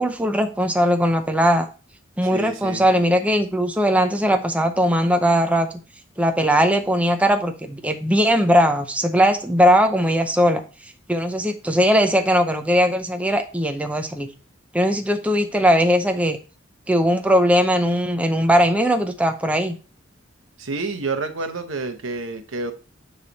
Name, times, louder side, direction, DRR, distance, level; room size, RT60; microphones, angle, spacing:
voice 1, 0.0-1.7 2.2-5.7 6.2-10.6 11.1-14.3 14.7-16.4 16.9-19.8, equal, 5° right, 6 dB, 0.6 m, -19 dB
voice 2, 2.3-2.8 20.6-22.7, right 3 dB, 80° right, 7 dB, 1.0 m, -29 dB
9.7 x 3.3 x 3.9 m, 0.35 s
head